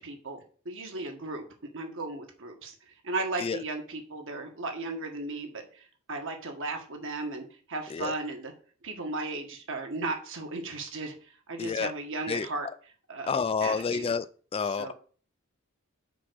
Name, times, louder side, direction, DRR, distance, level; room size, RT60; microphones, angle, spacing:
voice 1, 0.0-1.4 1.7-8.5 8.8-12.7 13.1-13.3 13.6-14.1 14.6-14.9, right 3 dB, 60° right, 1.7 m, -36 dB
voice 2, 11.6-11.9 12.3-12.5 13.3-14.3 14.5-14.9, left 5 dB, 25° left, 0.3 m, -29 dB
6.0 x 4.8 x 6.4 m
head